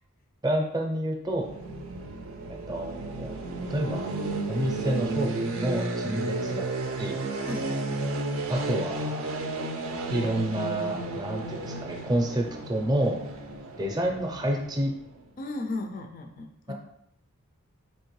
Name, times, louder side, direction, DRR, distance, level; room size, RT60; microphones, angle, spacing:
voice 1, 0.4-1.5 2.5-3.4 3.7-4.1 4.5-6.6 7.0-7.2 8.5-9.3 10.1-13.3 13.8-14.9 16.7-16.8, right 1 dB, 20° right, 1 dB, 0.5 m, -29 dB
sound 1, 1.3-15.2, right 2 dB, 65° right, 0.4 m, -33 dB
voice 2, 7.5-7.8 15.4-16.7, left 2 dB, 40° left, 5 dB, 0.3 m, -35 dB
4.4 x 2.8 x 3.1 m, 0.75 s
head